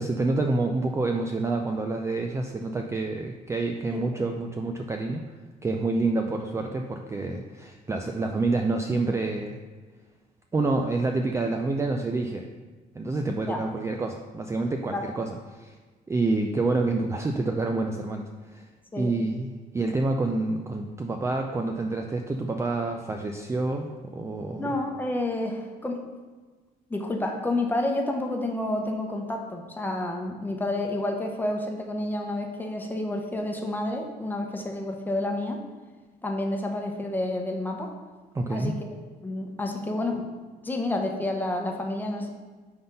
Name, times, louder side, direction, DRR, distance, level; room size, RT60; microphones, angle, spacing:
voice 1, 0.0-5.2 5.6-9.6 10.5-12.5 12.9-15.8 16.1-18.7 19.0-24.7 38.3-38.7, right 3 dB, 15° right, 3 dB, 0.4 m, -28 dB
voice 2, 24.6-26.0 26.9-35.6 36.2-37.9 38.5-38.8 39.2-40.3 40.6-42.3, left 1 dB, 10° left, 2 dB, 0.9 m, -29 dB
5.7 x 3.9 x 5.4 m, 1.4 s
cardioid pair, 110°, 17 cm